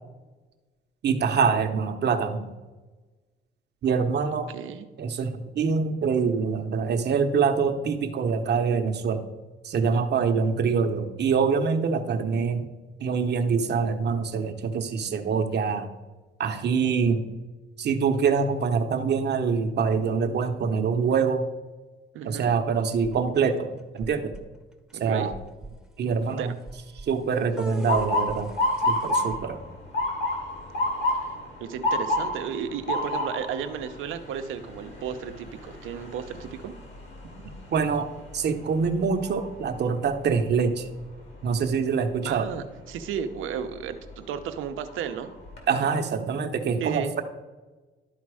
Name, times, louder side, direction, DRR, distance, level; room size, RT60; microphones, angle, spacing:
voice 1, 1.0-2.5 3.8-4.5 5.0-9.2 9.6-12.7 13.0-15.9 16.4-17.3 17.8-21.4 22.2-24.3 25.0-25.3 26.0-26.5 27.1-28.5 28.9-29.6 37.7-40.9 41.4-42.5 45.7-47.2, right 5 dB, 55° right, 6 dB, 0.9 m, -25 dB
voice 2, 4.5-4.9 22.1-22.5 24.9-25.3 26.4-26.5 31.2-31.3 31.6-36.7 42.3-45.3 46.8-47.1, right 8 dB, 85° right, 8 dB, 0.8 m, -34 dB
sound 1, 23.0-23.6 24.0-24.4 24.9-25.0 25.3-25.7 26.7-27.1 27.6-29.4, equal, 5° right, 0.8 m, -40 dB
Motor vehicle (road) / Siren, 27.9-39.8 40.2-40.7 41.5-41.8 43.6-43.9 44.4-44.5 44.9-45.6, left 1 dB, 65° left, 2.5 m, -30 dB
12.0 x 4.2 x 4.8 m, 1.2 s
cardioid pair, 90°, 20 cm